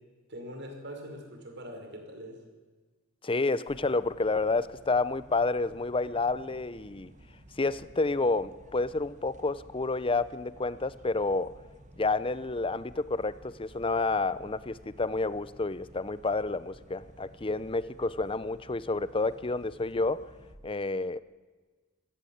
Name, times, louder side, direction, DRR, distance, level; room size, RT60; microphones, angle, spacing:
voice 1, 0.3-2.4, equal, 55° right, 4 dB, 5.3 m, -42 dB
voice 2, 3.2-7.1 7.6-11.5 12.0-20.3 20.6-21.2, left 3 dB, 25° left, 15 dB, 0.7 m, -29 dB
sound 1, 3.7-20.6, right 1 dB, 35° right, 1.7 m, -54 dB
25.0 x 17.5 x 8.7 m, 1.3 s
head